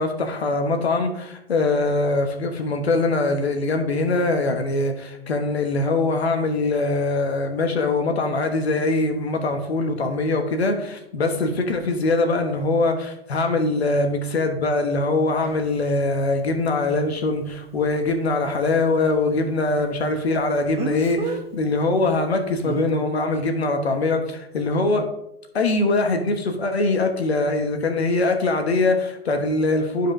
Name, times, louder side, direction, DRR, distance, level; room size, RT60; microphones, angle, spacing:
voice 1, 0.0-25.1 25.5-30.1, left 2 dB, 85° left, 5 dB, 1.3 m, -22 dB
Speech, 15.5-15.6 20.8-21.4 22.6-22.9, right 3 dB, 20° right, 0.9 m, -28 dB
12.0 x 4.9 x 2.6 m, 0.81 s
hypercardioid pair, 110°, 31 cm